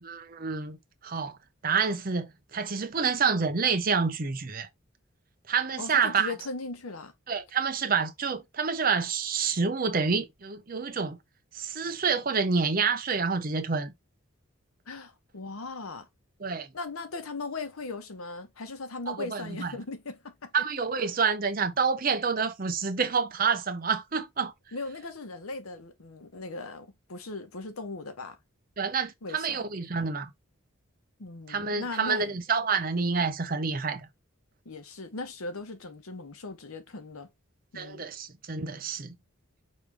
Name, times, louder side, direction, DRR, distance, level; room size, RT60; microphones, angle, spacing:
voice 1, 0.0-1.4 1.6-4.7 5.5-6.3 7.3-11.2 11.5-13.9 16.4-16.7 19.1-19.7 20.5-24.5 28.8-30.3 31.5-34.1 37.7-39.2, right 5 dB, 40° right, 0.7 m, -28 dB
voice 2, 5.8-7.1 14.9-16.1 16.7-20.5 24.7-28.4 29.2-29.6 31.2-32.3 34.6-37.3 37.7-38.0, left 3 dB, 85° left, 0.9 m, -38 dB
4.9 x 3.2 x 3.4 m
head